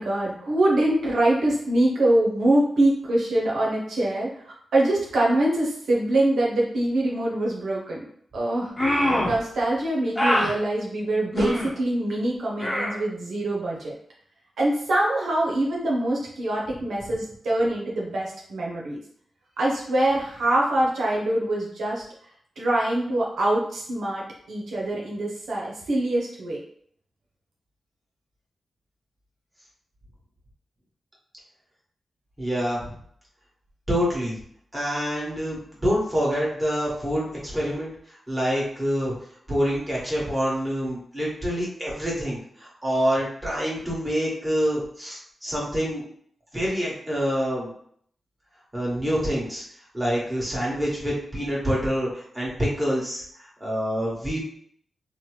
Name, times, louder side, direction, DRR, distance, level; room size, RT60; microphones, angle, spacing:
voice 1, 0.0-8.0 8.3-13.9 14.6-19.0 19.6-22.0 22.6-26.6, right 1 dB, 85° right, -4 dB, 0.7 m, -24 dB
sound 1, 8.8-9.4 10.1-10.5 11.3-11.7 12.6-13.0, left 1 dB, 20° left, 0.9 m, -23 dB
voice 2, 32.4-32.9 33.9-34.3 34.7-37.9 38.3-39.1 39.5-46.0 46.5-47.7 48.7-49.6 49.9-53.2 53.6-54.4, equal, 15° right, -5 dB, 1.4 m, -26 dB
2.9 x 2.1 x 3.2 m, 0.63 s
cardioid pair, 65°, 0 cm